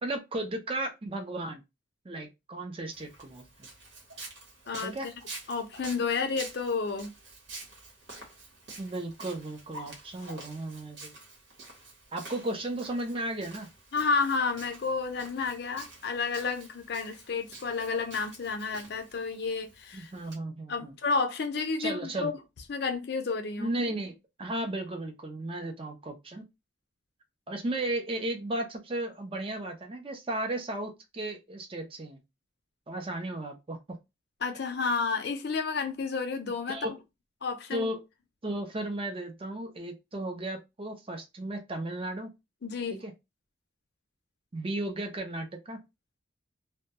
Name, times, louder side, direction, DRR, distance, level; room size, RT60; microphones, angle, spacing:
voice 1, 0.0-1.6 2.0-3.7 4.8-5.1 8.8-11.1 12.1-13.7 19.9-20.9 21.8-22.3 23.6-26.4 27.5-32.2 32.9-34.0 36.7-37.0 37.7-38.0 38.4-42.3 42.9-43.1 44.5-45.8, right 1 dB, 30° right, 0.5 m, -35 dB
Walk footsteps, 2.9-20.4, right 3 dB, 65° right, 1.0 m, -48 dB
voice 2, 4.7-5.1 5.5-7.1 13.9-20.1 20.7-22.3 22.7-23.8 34.4-36.8 37.4-37.9 42.6-43.0, left 4 dB, 55° left, 0.5 m, -31 dB
2.2 x 2.1 x 2.8 m
head